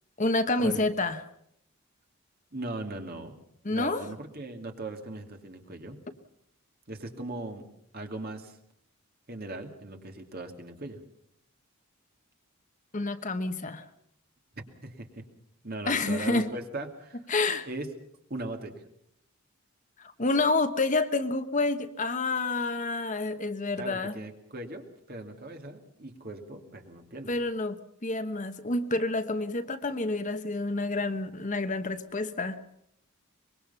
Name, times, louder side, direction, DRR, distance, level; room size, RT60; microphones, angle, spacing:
voice 1, 0.2-1.2 3.6-4.0 12.9-13.8 15.9-16.5 17.3-17.7 20.0-24.2 27.3-32.6, left 2 dB, 35° left, 9 dB, 1.1 m, -28 dB
voice 2, 2.5-3.3 3.7-6.0 6.9-7.6 7.9-8.6 9.3-11.0 14.8-15.3 15.6-17.3 17.6-17.9 18.3-18.8 23.8-27.4, right 2 dB, 45° right, 4 dB, 2.6 m, -39 dB
24.5 x 21.5 x 5.6 m, 0.72 s
head